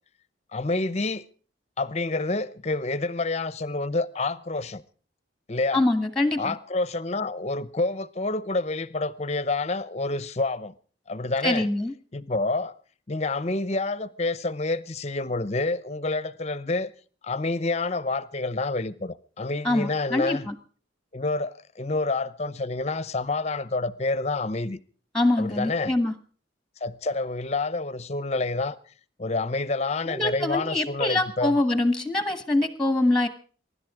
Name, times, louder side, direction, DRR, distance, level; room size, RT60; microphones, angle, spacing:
voice 1, 0.5-1.2 1.8-4.8 5.5-5.8 6.4-10.7 11.1-11.7 12.1-12.7 13.1-16.9 17.2-20.4 21.1-24.8 25.4-26.0 26.8-28.8 29.2-31.6, left 3 dB, 35° left, 0.8 m, -28 dB
voice 2, 5.7-6.5 11.4-11.9 19.6-20.5 25.1-26.1 30.1-33.3, left 2 dB, 5° left, 1.3 m, -24 dB
24.0 x 11.5 x 4.9 m
head